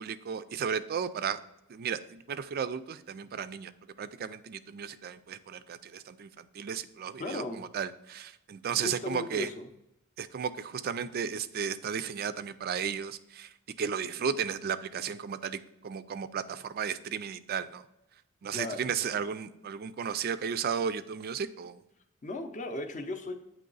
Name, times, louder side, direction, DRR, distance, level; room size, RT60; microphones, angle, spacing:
voice 1, 0.0-1.4 1.7-3.7 4.0-9.5 10.2-13.5 13.8-17.8 18.4-21.8, right 7 dB, 45° right, 13 dB, 0.3 m, -34 dB
voice 2, 7.2-7.6 8.8-9.7 18.5-18.9 22.2-23.3, left 2 dB, 35° left, 6 dB, 0.6 m, -36 dB
8.7 x 3.0 x 3.9 m, 0.87 s
head